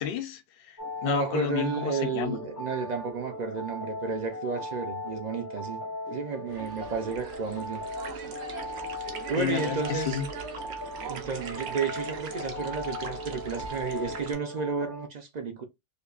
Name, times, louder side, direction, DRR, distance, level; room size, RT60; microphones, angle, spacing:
voice 1, 0.0-2.4 9.4-10.3, left 9 dB, 65° left, 0.7 m, -32 dB
sound 1, 0.8-15.1, left 1 dB, 25° left, 0.4 m, -38 dB
voice 2, 1.0-5.8 6.1-7.8 9.3-10.2 11.0-15.7, right 5 dB, 50° right, 0.6 m, -32 dB
sound 2, 6.5-14.3, right 5 dB, 80° right, 1.0 m, -41 dB
5.1 x 2.1 x 2.3 m
omnidirectional pair, 1.1 m